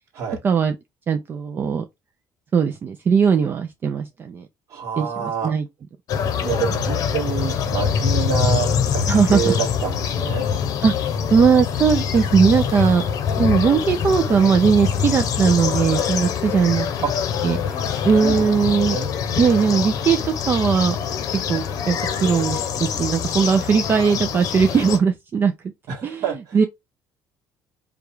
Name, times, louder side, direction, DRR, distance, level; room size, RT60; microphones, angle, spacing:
voice 1, 0.4-0.8 1.1-1.8 2.5-4.5 5.0-5.7 9.1-9.5 10.8-10.9 11.3-13.0 13.4-16.9 17.4-19.0 19.4-21.0 21.5-25.5 26.0-26.2 26.5-26.6, right 6 dB, 25° right, 0.4 m, -19 dB
voice 2, 4.7-5.5 6.4-10.5 17.0-17.1 17.8-19.1 25.9-26.7, right 7 dB, 45° right, 1.7 m, -27 dB
sound 1, 6.1-25.0, left 7 dB, 50° left, 0.8 m, -24 dB
5.0 x 2.3 x 4.6 m
cardioid pair, 175°, 8 cm